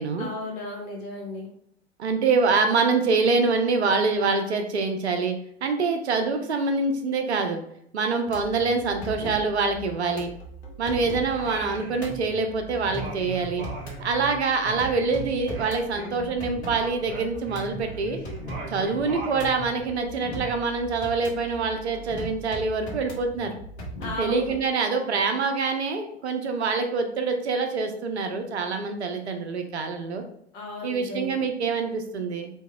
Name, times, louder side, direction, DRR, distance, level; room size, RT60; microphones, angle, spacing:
voice 1, 0.2-1.5 24.0-24.5 30.5-31.3, left 1 dB, 55° left, -1 dB, 1.1 m, -34 dB
voice 2, 2.0-7.6 7.9-10.3 10.8-13.6 14.0-18.2 18.7-23.6 24.2-30.2 30.8-32.5, right 4 dB, 75° right, 6 dB, 0.6 m, -25 dB
sound 1, 8.3-24.6, right 1 dB, 75° left, 0.8 m, -40 dB
Singing, 11.3-12.5 12.7-16.4 16.7-19.9, right 2 dB, 45° right, 0.7 m, -39 dB
2.8 x 2.6 x 2.3 m, 0.69 s
figure-of-eight pair, 90°, 33 cm